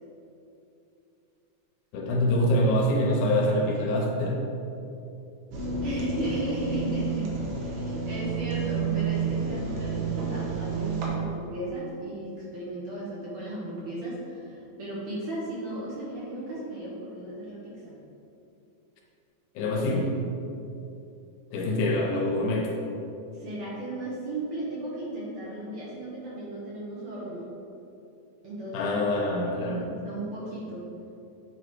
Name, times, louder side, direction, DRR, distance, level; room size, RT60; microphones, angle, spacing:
voice 1, 1.9-4.5 19.6-20.2 21.5-22.8 28.7-29.9, left 1 dB, 85° left, 0 dB, 2.4 m, -25 dB
sound 1, 5.5-11.1, right 5 dB, 80° right, 2.4 m, -30 dB
voice 2, 5.8-7.3 7.6-18.0 23.3-27.5 28.4-29.0 29.4-30.8, right 1 dB, 60° right, -7 dB, 1.6 m, -35 dB
8.2 x 3.0 x 4.6 m, 2.8 s
omnidirectional pair, 3.5 m